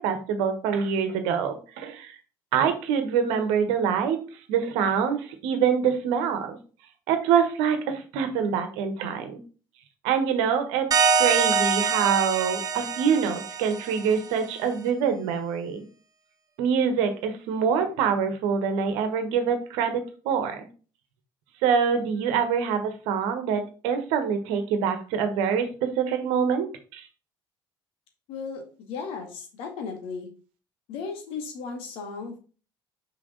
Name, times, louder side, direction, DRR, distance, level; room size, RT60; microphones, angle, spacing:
voice 1, 0.0-2.2 2.5-4.2 4.5-6.6 7.1-9.4 10.0-15.8 16.6-20.7 21.6-26.7 26.9-27.1, right 7 dB, 70° right, 8 dB, 1.2 m, -25 dB
sound 1, 10.9-14.3, right 5 dB, 35° right, 0.9 m, -25 dB
voice 2, 28.3-30.3 30.9-32.4, left 5 dB, 65° left, 4 dB, 1.9 m, -35 dB
6.1 x 5.4 x 3.9 m, 0.36 s
figure-of-eight pair, 55°, 11 cm